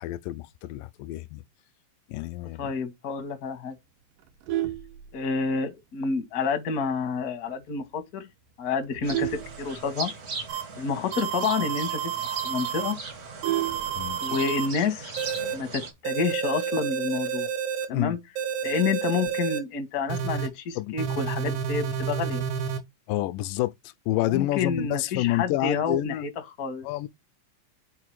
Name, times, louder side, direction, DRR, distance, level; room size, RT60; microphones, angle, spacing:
voice 1, 0.0-1.4 2.1-2.7 14.0-14.2 17.9-18.2 20.8-21.0 23.1-26.3 26.8-27.1, left 16 dB, 85° left, 2.2 m, -28 dB
voice 2, 2.6-3.7 5.1-8.3 8.6-10.1 10.8-13.0 14.2-15.2 15.5-17.5 17.9-18.2 18.6-22.4 24.2-26.3 26.6-26.9, left 5 dB, 60° left, 0.9 m, -29 dB
Vehicle horn car horn honking, 4.2-5.7 6.2-6.4 6.7-6.8 7.2-7.3 7.6-8.0 8.5-10.4 10.7-10.8 11.1-11.2 11.6-11.7 12.1-12.2 12.4-14.5 15.7-16.1, right 13 dB, 85° right, 2.6 m, -32 dB
sound 1, 9.0-15.9, right 4 dB, 50° right, 1.1 m, -39 dB
sound 2, 10.5-10.6 11.1-12.9 13.4-14.7 15.2-15.5 16.0-17.9 18.4-19.6 20.1-20.5 21.0-22.8, right 8 dB, 70° right, 2.4 m, -30 dB
5.8 x 4.6 x 4.7 m
omnidirectional pair, 3.8 m